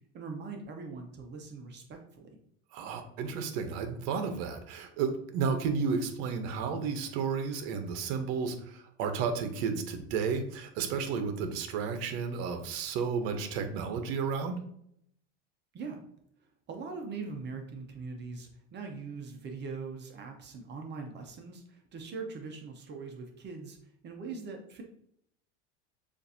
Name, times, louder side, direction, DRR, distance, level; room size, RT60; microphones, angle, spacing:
voice 1, 0.1-2.3 15.7-16.0 16.7-23.8 24.0-24.8, right 4 dB, 30° right, 3 dB, 0.8 m, -41 dB
voice 2, 2.7-14.6, right 5 dB, 60° right, 7 dB, 0.9 m, -32 dB
6.8 x 2.6 x 2.7 m, 0.71 s
supercardioid pair, 120°, 34 cm